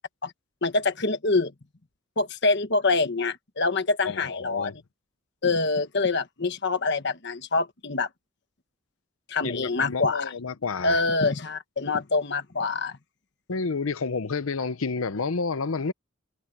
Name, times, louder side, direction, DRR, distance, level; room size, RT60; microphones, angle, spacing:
voice 1, 0.6-1.5 2.2-4.7 5.4-8.1 9.3-10.2 10.8-13.0, left 3 dB, 55° left, 1.3 m, -25 dB
voice 2, 4.0-4.8 9.4-11.0 13.5-15.9, left 4 dB, 85° left, 0.8 m, -30 dB
head